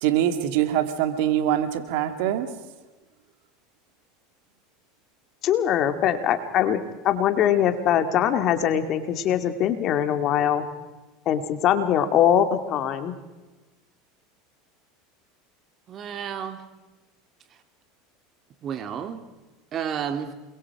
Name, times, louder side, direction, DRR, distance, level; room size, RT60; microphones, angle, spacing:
voice 1, 0.0-2.5, right 11 dB, 65° right, 8 dB, 2.3 m, -23 dB
voice 2, 5.4-10.7 11.3-13.1, left 9 dB, 50° left, 8 dB, 2.3 m, -22 dB
voice 3, 15.9-16.6 18.6-19.2 19.7-20.3, right 8 dB, 40° right, 7 dB, 2.6 m, -31 dB
28.5 x 22.5 x 4.9 m, 1.2 s
hypercardioid pair, 90°, 0 cm